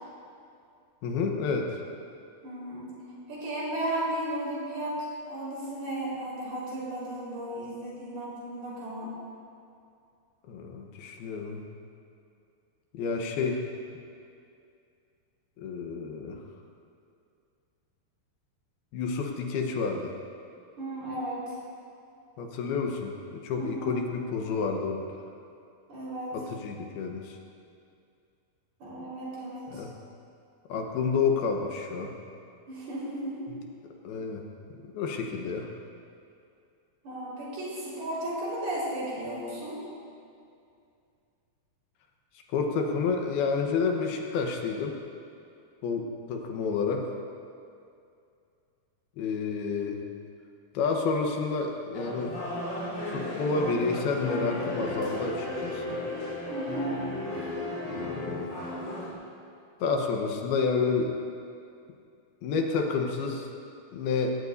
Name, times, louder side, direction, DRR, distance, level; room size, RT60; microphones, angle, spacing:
voice 1, 1.0-1.7 10.5-11.6 12.9-13.6 15.6-16.4 18.9-20.1 22.4-25.0 26.3-27.4 29.7-29.9 30.7-32.1 34.0-34.4 34.9-35.7 42.5-45.0 45.8-47.0 49.2-50.0 50.7-52.4 53.1-56.0 57.8-58.5 59.8-61.2 62.4-63.5 63.9-64.3, left 4 dB, 80° left, 2 dB, 3.0 m, -29 dB
voice 2, 2.4-2.9 3.3-5.0 5.3-9.1 20.8-21.6 23.6-24.0 25.9-26.4 28.8-29.8 32.7-33.5 37.0-39.8 56.5-57.0, right 1 dB, 75° right, -7 dB, 6.5 m, -34 dB
sound 1, 51.9-59.1, left 1 dB, 35° left, 4.2 m, -34 dB
19.5 x 18.0 x 2.7 m, 2.5 s
omnidirectional pair, 4.5 m